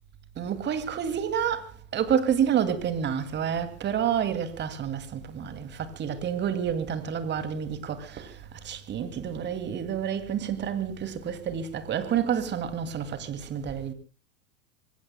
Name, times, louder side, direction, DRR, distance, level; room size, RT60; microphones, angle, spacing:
voice 1, 0.4-13.9, right 8 dB, 25° right, 2.4 m, -29 dB
26.0 x 23.0 x 2.2 m
figure-of-eight pair, 100°, 42 cm